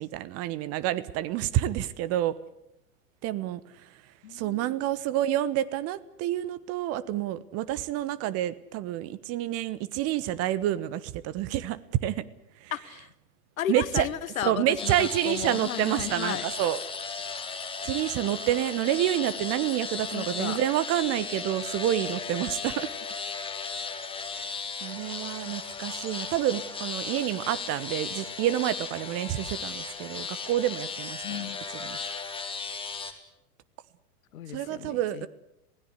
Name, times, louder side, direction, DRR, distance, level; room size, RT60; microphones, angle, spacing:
voice 1, 0.0-2.3 3.2-3.6 4.3-12.2 13.7-14.1 14.4-16.8 17.8-22.9 24.4-24.5 24.8-31.2 31.8-32.0 34.5-35.3, right 13 dB, 30° right, 16 dB, 1.1 m, -28 dB
voice 2, 4.2-4.9 12.7-13.1 13.6-16.5 20.1-20.6 31.2-31.6 34.3-35.3, left 11 dB, 60° left, 16 dB, 1.3 m, -34 dB
sound 1, 14.8-33.1, left 5 dB, 10° left, 2.5 m, -36 dB
26.5 x 17.5 x 8.2 m, 0.83 s
figure-of-eight pair, 95°, 46 cm